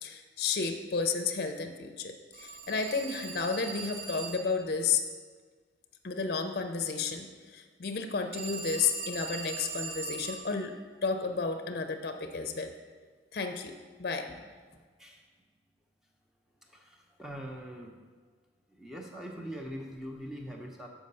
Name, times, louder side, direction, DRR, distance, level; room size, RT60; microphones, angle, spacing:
voice 1, 0.0-5.0 6.0-12.7 13.3-14.3, left 5 dB, 60° left, 6 dB, 0.5 m, -32 dB
Telephone, 2.3-4.6 8.3-10.5, right 4 dB, 70° right, 1.2 m, -40 dB
voice 2, 16.6-18.0 18.7-20.9, equal, 5° right, 0 dB, 0.7 m, -42 dB
6.4 x 4.8 x 5.4 m, 1.5 s
head